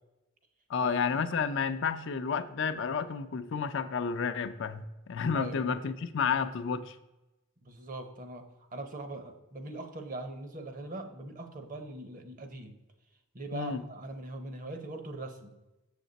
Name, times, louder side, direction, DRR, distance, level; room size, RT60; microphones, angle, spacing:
voice 1, 0.7-7.0 13.5-13.8, left 6 dB, 60° left, 9 dB, 0.5 m, -31 dB
voice 2, 5.3-5.7 7.6-12.8 13.3-15.5, right 2 dB, 40° right, 7 dB, 0.9 m, -41 dB
7.2 x 6.8 x 4.0 m, 1.0 s
head